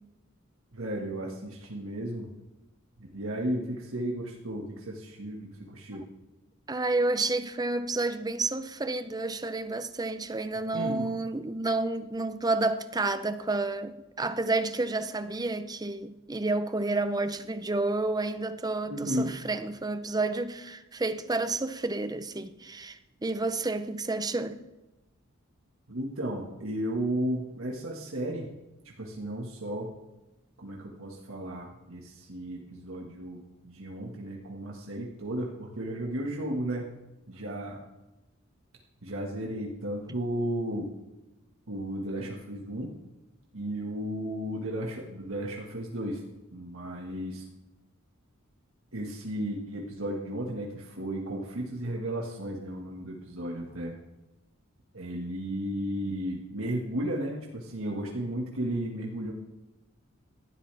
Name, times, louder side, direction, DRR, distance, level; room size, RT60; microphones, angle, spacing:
voice 1, 0.7-2.3 3.0-6.1 10.7-11.1 18.9-19.3 25.9-28.5 28.9-29.9 30.6-36.9 37.3-37.8 39.0-40.9 41.7-42.9 43.5-46.2 46.5-47.4 48.9-53.9 54.9-59.3, right 1 dB, 75° right, 1.8 m, -34 dB
voice 2, 6.7-24.6, right 2 dB, 20° right, 0.7 m, -30 dB
18.5 x 12.5 x 3.5 m
head